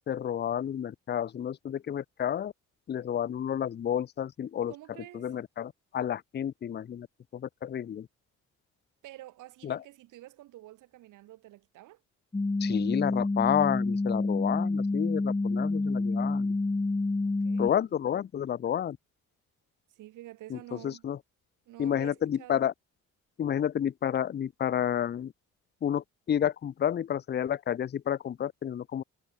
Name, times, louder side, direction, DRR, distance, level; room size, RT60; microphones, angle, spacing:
voice 1, 0.1-2.5 2.9-4.7 5.1-7.1 7.3-8.1 9.6-9.8 12.6-16.5 17.6-19.0 20.5-20.6 20.8-21.2 21.8-22.7 23.4-25.3 25.8-29.0, left 9 dB, 35° left, 0.6 m, -30 dB
voice 2, 4.7-5.3 9.0-12.0 17.2-17.9 19.9-21.1 21.7-22.7, right 16 dB, 90° right, 4.5 m, -49 dB
sound 1, 12.3-17.7, left 3 dB, 15° left, 1.3 m, -28 dB
cardioid pair, 90°, 30 cm